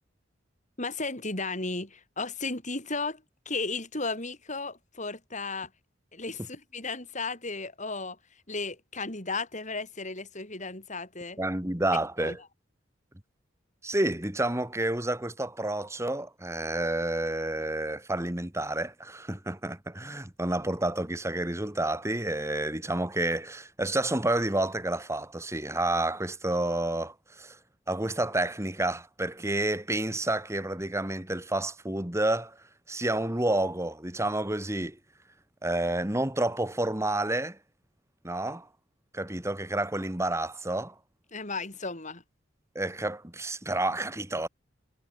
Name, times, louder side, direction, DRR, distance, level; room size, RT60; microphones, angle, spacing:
voice 1, 0.8-5.7 6.1-8.2 8.5-11.4 12.2-12.4 41.3-42.2, left 3 dB, 40° left, 6.5 m, -34 dB
voice 2, 11.4-12.4 13.8-27.6 27.9-32.6 32.9-35.0 35.6-37.6 38.2-38.7 39.1-40.9 42.8-44.5, right 1 dB, 15° right, 2.2 m, -29 dB
head